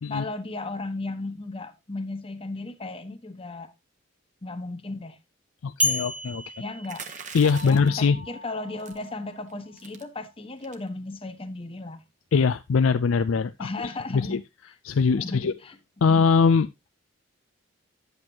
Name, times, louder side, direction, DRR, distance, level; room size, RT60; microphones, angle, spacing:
voice 1, 0.1-3.7 4.4-5.2 6.6-7.0 7.6-12.0 13.6-14.4 15.1-15.7, left 2 dB, 30° left, 1.2 m, -35 dB
voice 2, 5.6-6.4 7.3-8.2 12.3-13.7 14.1-14.4 14.8-15.5 16.0-16.7, left 5 dB, 85° left, 0.4 m, -21 dB
sound 1, 5.8-7.9, left 1 dB, 5° right, 0.8 m, -30 dB
sound 2, 6.8-8.0 8.8-9.1 9.5-9.6 9.8-10.0 10.6-10.9, right 6 dB, 40° right, 1.1 m, -41 dB
sound 3, 7.4-10.2, left 2 dB, 55° right, 2.5 m, -44 dB
10.5 x 8.1 x 2.8 m
head